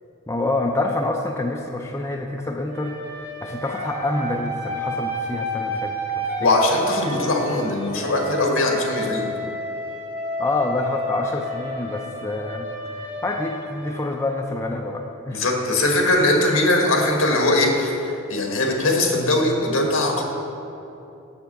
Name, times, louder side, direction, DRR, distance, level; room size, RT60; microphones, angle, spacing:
voice 1, 0.3-3.0 3.4-5.9 6.2-6.5 10.4-15.4, left 2 dB, 10° left, 1 dB, 0.3 m, -27 dB
sound 1, 2.7-14.5, equal, 10° right, 2.1 m, -31 dB
voice 2, 6.4-9.2 15.3-20.2, left 2 dB, 70° left, 1 dB, 1.4 m, -20 dB
6.9 x 6.1 x 6.6 m, 2.9 s
head